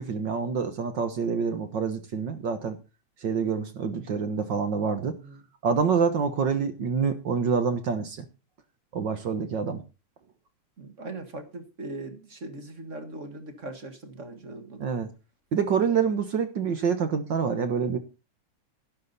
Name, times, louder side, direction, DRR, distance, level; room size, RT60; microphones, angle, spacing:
voice 1, 0.0-2.8 3.2-5.2 5.6-8.2 8.9-9.8 14.8-15.1 15.5-18.0, right 6 dB, 55° right, 9 dB, 1.3 m, -26 dB
voice 2, 10.8-14.9, right 2 dB, 35° right, 7 dB, 1.4 m, -40 dB
12.0 x 11.5 x 4.2 m, 0.31 s
omnidirectional pair, 3.4 m